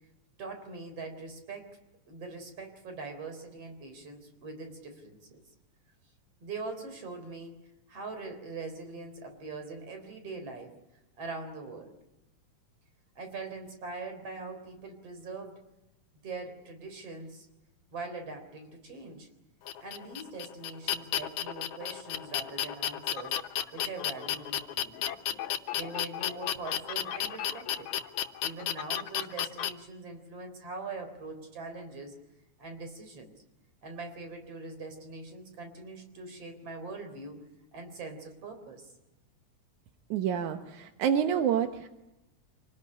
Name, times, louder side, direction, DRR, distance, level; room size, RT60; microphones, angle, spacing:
voice 1, 0.4-1.8 2.1-5.4 6.4-7.5 7.9-10.7 11.2-11.9 13.2-15.6 16.2-17.5 17.9-19.3 19.8-24.9 25.8-27.9 28.4-32.2 32.6-33.3 33.8-37.4 37.7-38.9, right 3 dB, 55° right, 7 dB, 4.8 m, -42 dB
sound 1, 19.7-29.7, left 11 dB, 90° left, 2.5 m, -33 dB
voice 2, 40.1-41.9, right 8 dB, 85° right, 6 dB, 2.6 m, -28 dB
26.0 x 19.5 x 9.9 m, 0.95 s
omnidirectional pair, 3.3 m